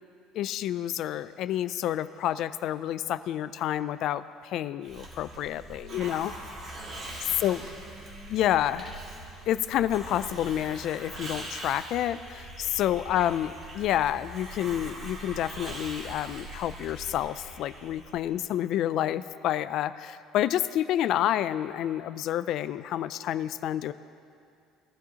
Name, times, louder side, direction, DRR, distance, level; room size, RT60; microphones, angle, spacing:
voice 1, 0.3-6.3 7.4-7.6 8.3-9.0 9.5-23.9, left 12 dB, 50° left, 14 dB, 0.3 m, -29 dB
Hiss, 4.8-18.3, right 1 dB, 35° right, 2.6 m, -42 dB
voice 2, 5.8-6.3 6.7-9.2 13.1-13.3, equal, 55° right, -1 dB, 3.5 m, -50 dB
21.0 x 12.0 x 2.9 m, 2.4 s
cardioid pair, 155°, 0 cm